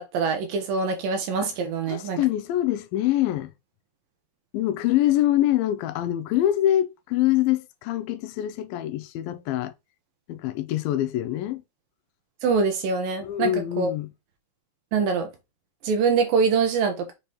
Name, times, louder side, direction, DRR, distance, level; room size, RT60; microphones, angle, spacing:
voice 1, 0.0-2.2 12.4-13.5 13.8-13.9 14.9-15.3 15.8-17.1, right 5 dB, 75° right, 3.0 m, -24 dB
voice 2, 1.9-3.5 4.5-9.7 10.3-11.6 13.2-14.1, left 13 dB, 90° left, 2.4 m, -24 dB
7.1 x 3.4 x 4.3 m
omnidirectional pair, 4.1 m